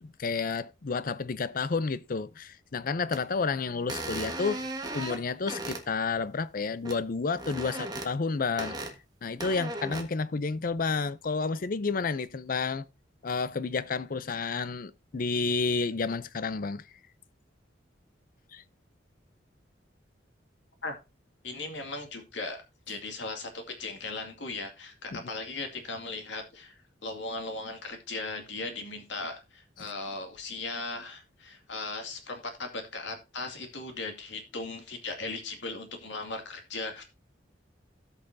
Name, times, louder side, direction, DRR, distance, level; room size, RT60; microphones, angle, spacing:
voice 1, 0.0-4.7 4.9-8.9 9.2-12.8 13.2-16.8 18.5-18.6 25.1-25.3 29.8-29.9, left 4 dB, 50° left, 0.5 m, -31 dB
sound 1, 3.1-3.2 3.9-5.8 6.8-7.0 7.3-8.1 8.6-8.9 9.4-10.0, right 2 dB, 20° right, 1.4 m, -36 dB
voice 2, 21.4-22.6 22.9-37.0, left 3 dB, 75° left, 2.3 m, -38 dB
16.5 x 5.6 x 2.7 m
head